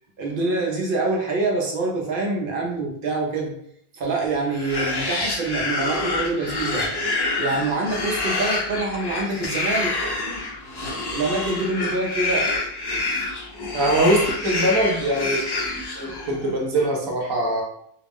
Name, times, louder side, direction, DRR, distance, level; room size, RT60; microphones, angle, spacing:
voice 1, 0.2-3.6 3.9-6.9 7.4-10.2 11.1-12.5, right 3 dB, 65° right, -1 dB, 0.7 m, -25 dB
sound 1, 4.5-16.5, left 2 dB, 40° left, 0.4 m, -27 dB
voice 2, 13.7-15.4 15.9-17.6, right 1 dB, 30° right, -1 dB, 0.5 m, -22 dB
2.3 x 2.0 x 3.4 m, 0.68 s
omnidirectional pair, 1.1 m